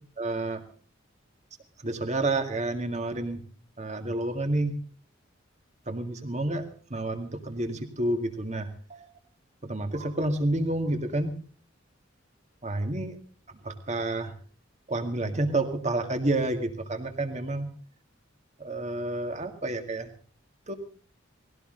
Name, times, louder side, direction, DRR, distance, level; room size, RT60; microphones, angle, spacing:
voice 1, 0.2-0.6 1.8-3.4 3.8-4.7 5.9-6.7 6.9-9.1 9.6-11.3 12.6-13.2 13.6-14.3 14.9-17.7 18.6-20.1 20.7-20.8, right 2 dB, 35° right, 6 dB, 2.1 m, -29 dB
19.5 x 17.0 x 3.9 m, 0.41 s
head